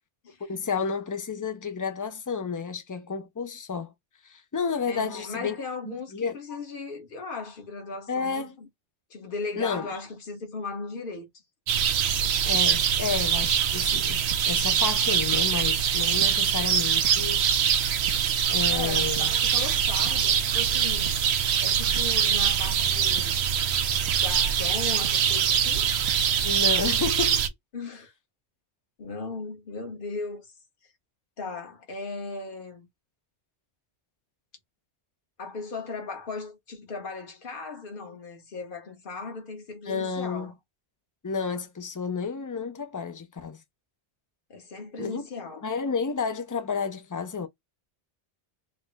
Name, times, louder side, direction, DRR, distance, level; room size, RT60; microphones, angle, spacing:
voice 1, 0.4-3.9 4.2-5.6 6.1-6.4 8.1-8.6 9.6-9.9 12.4-17.4 18.5-19.3 26.4-27.5 39.9-40.5 41.2-43.6 45.0-45.2 45.6-47.5, left 5 dB, 30° left, 0.3 m, -31 dB
voice 2, 4.9-8.7 9.1-11.3 18.7-21.2 21.6-23.5 24.1-25.9 27.7-28.1 29.0-30.5 30.8-30.9 31.4-32.9 35.4-40.5 44.5-45.7, left 3 dB, 50° left, 1.3 m, -37 dB
sound 1, 11.7-27.5, right 8 dB, 75° right, 0.9 m, -24 dB
4.3 x 2.1 x 3.3 m
omnidirectional pair, 1.1 m